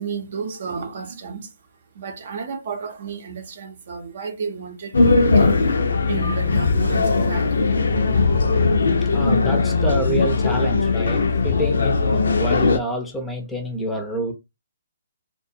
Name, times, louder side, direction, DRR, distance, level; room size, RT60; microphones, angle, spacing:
voice 1, 0.0-1.5 1.9-5.5 6.1-7.7 8.1-8.2, right 5 dB, 50° right, 0.6 m, -32 dB
sound 1, 4.9-12.8, left 4 dB, 70° left, 0.5 m, -19 dB
voice 2, 9.1-14.3, equal, 5° left, 0.5 m, -27 dB
2.4 x 2.2 x 2.7 m
figure-of-eight pair, 140°, 0 cm